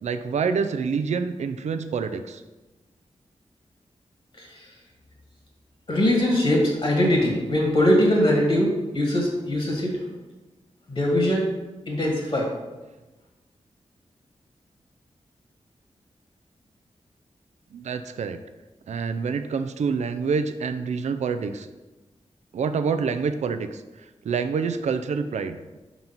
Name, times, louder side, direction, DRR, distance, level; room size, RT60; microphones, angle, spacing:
voice 1, 0.0-2.4 17.7-18.4 18.9-21.7 22.5-23.8 24.2-25.8, right 5 dB, 80° right, 9 dB, 0.4 m, -27 dB
voice 2, 4.3-4.7 5.9-10.1 10.9-11.5 11.9-12.5, left 1 dB, 50° left, -1 dB, 1.7 m, -22 dB
4.5 x 4.0 x 5.6 m, 1.1 s
wide cardioid pair, 75°, 12 cm